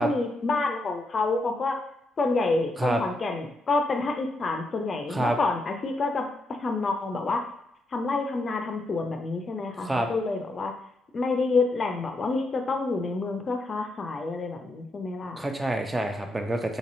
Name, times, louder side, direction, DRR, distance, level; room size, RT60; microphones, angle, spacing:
voice 1, 0.0-1.8 2.2-7.5 7.9-10.7 11.1-15.5, left 3 dB, 35° left, 4 dB, 0.5 m, -28 dB
voice 2, 9.8-10.1 15.4-16.8, right 1 dB, 15° right, 4 dB, 0.6 m, -27 dB
4.0 x 3.0 x 2.6 m, 0.77 s
figure-of-eight pair, 50°, 0 cm